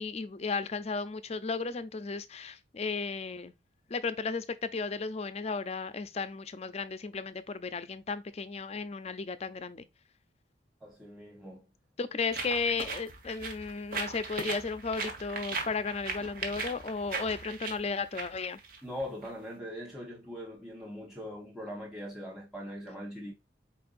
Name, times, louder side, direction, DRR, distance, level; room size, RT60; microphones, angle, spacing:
voice 1, 0.0-3.5 3.9-9.9 12.0-18.6, left 4 dB, 35° left, 0.5 m, -34 dB
voice 2, 10.8-11.6 18.8-23.3, equal, 5° right, 1.1 m, -41 dB
sound 1, 12.3-19.3, right 4 dB, 50° right, 1.2 m, -39 dB
4.5 x 4.4 x 2.4 m
head